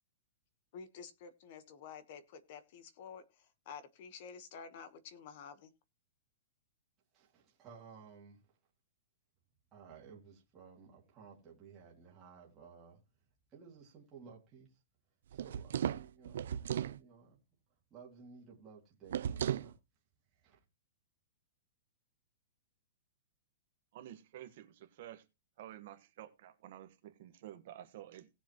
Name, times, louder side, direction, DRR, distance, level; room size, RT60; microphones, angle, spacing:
voice 1, 0.7-5.7, left 6 dB, 35° left, 1.2 m, -50 dB
voice 2, 7.1-8.6 9.7-13.0 13.5-14.8 15.3-17.4 17.9-19.8 20.4-20.6, right 6 dB, 15° right, 2.5 m, -56 dB
sound 1, 15.3-17.0 19.1-19.7, right 9 dB, 60° right, 0.4 m, -36 dB
voice 3, 23.9-25.3 25.6-28.3, right 12 dB, 40° right, 1.3 m, -51 dB
18.0 x 7.1 x 3.0 m
hypercardioid pair, 180°, 0 cm